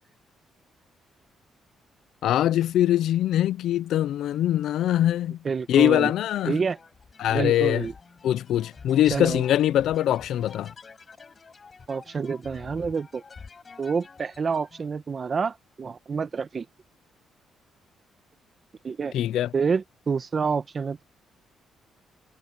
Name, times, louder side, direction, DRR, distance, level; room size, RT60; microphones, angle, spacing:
voice 1, 2.2-5.4 5.7-6.5 7.2-7.8 8.2-10.7 19.1-19.5, left 12 dB, 75° left, 0.5 m, -22 dB
voice 2, 5.4-6.1 6.5-6.8 7.3-7.9 9.1-9.4 11.9-13.2 13.8-16.6 18.8-19.1 19.5-21.0, right 5 dB, 40° right, 1.2 m, -28 dB
sound 1, 6.7-14.9, left 5 dB, 35° left, 7.7 m, -48 dB
cardioid pair, 90°, 0 cm